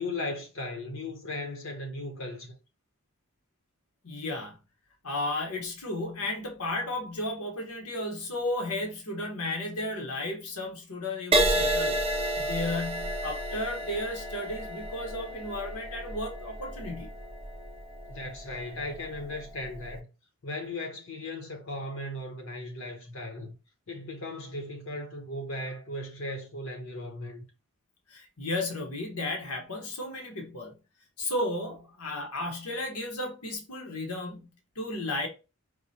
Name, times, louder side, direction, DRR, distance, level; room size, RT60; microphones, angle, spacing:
voice 1, 0.0-2.5 18.1-20.1 20.4-23.5 23.9-27.4, left 2 dB, 65° left, 0.9 m, -37 dB
voice 2, 4.0-4.6 5.0-17.1 28.1-30.8 31.2-35.3, left 2 dB, 85° left, 1.1 m, -34 dB
Crash cymbal, 11.3-19.0 19.6-19.9, right 1 dB, 25° right, 0.6 m, -31 dB
4.7 x 2.2 x 2.8 m
head